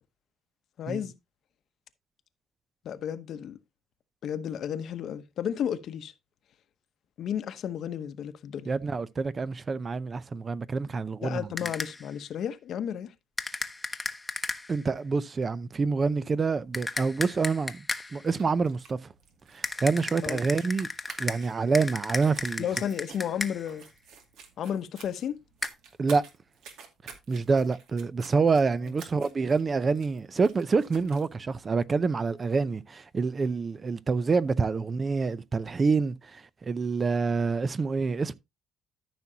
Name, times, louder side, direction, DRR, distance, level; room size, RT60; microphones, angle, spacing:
voice 1, 0.8-1.1 2.8-3.6 4.2-6.1 7.2-8.7 11.2-13.1 20.2-20.4 22.6-23.9 24.6-25.4, left 9 dB, 60° left, 0.9 m, -33 dB
voice 2, 8.7-11.5 14.7-17.8 18.1-19.0 19.5-20.9 21.2-22.6 26.0-26.2 27.3-38.3, right 4 dB, 30° right, 0.5 m, -27 dB
sound 1, 11.6-12.1 13.4-14.8 16.7-18.3 19.6-23.8 25.6-25.7, left 3 dB, 15° left, 0.9 m, -35 dB
sound 2, 18.1-31.3, right 6 dB, 80° right, 2.3 m, -51 dB
13.5 x 6.0 x 2.8 m
cardioid pair, 110°, 0 cm